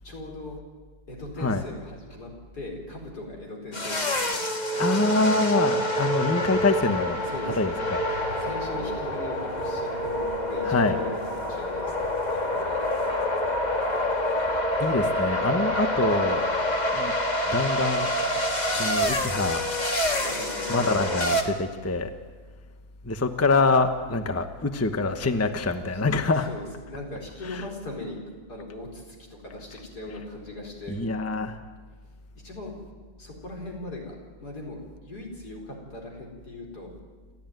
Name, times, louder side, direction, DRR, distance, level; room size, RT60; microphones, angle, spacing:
voice 1, 0.0-0.6 1.1-4.4 4.7-4.9 5.2-5.5 7.1-7.6 8.4-12.7 20.2-20.9 25.9-28.2 28.5-29.2 29.4-31.2 32.4-32.8 33.2-36.9, left 1 dB, 75° left, 0 dB, 5.0 m, -39 dB
sound 1, 3.7-21.4, left 1 dB, 25° left, 1.9 m, -27 dB
voice 2, 4.8-7.2 7.6-8.0 10.6-11.0 14.8-16.4 16.9-17.1 17.5-18.1 18.7-19.6 20.7-22.1 23.0-26.5 27.5-27.6 30.9-31.6, left 3 dB, 10° left, 8 dB, 0.9 m, -25 dB
28.5 x 13.5 x 9.3 m, 1.4 s
omnidirectional pair, 1.7 m